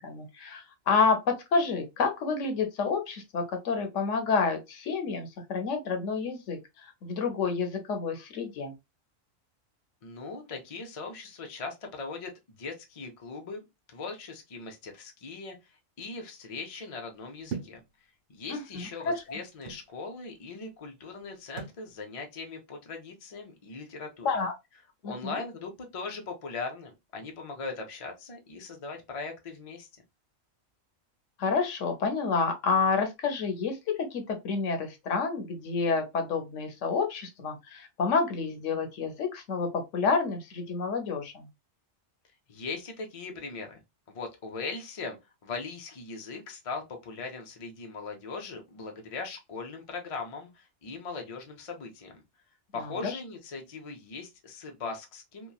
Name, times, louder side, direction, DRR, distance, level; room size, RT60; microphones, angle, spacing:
voice 1, 0.0-8.7 18.5-19.2 24.2-24.5 25.0-25.4 31.4-41.5 52.7-53.2, left 4 dB, 70° left, 1.0 m, -29 dB
voice 2, 10.0-17.8 18.3-24.3 25.0-29.9 42.5-43.8 44.1-45.2 45.4-52.2 52.7-55.5, left 4 dB, 40° left, 0.5 m, -40 dB
sound 1, 17.5-17.8 18.7-19.9 21.6-21.9, right 6 dB, 65° right, 1.1 m, -39 dB
2.9 x 2.2 x 2.3 m
omnidirectional pair, 1.4 m